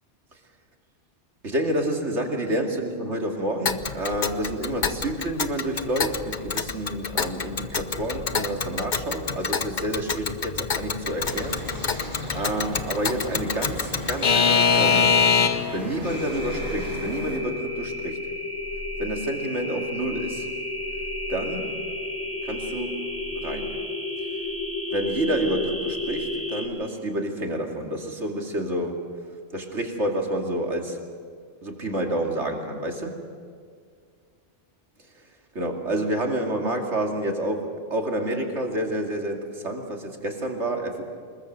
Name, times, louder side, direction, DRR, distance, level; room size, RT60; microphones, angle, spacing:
voice 1, 1.4-11.6 12.3-15.2 15.7-18.2 19.0-20.5 21.3-21.7 22.4-23.1 23.4-23.7 24.9-29.0 29.5-31.0 31.6-33.2 35.5-41.0, right 1 dB, 80° right, 2 dB, 2.9 m, -29 dB
Alarm / Clock, 3.7-15.8, left 6 dB, 45° left, 1.0 m, -25 dB
sound 1, 11.2-17.4, equal, 25° right, 5.5 m, -37 dB
sound 2, 16.0-26.7, left 2 dB, 10° left, 3.9 m, -32 dB
26.0 x 21.5 x 6.7 m, 2.1 s
omnidirectional pair, 1.2 m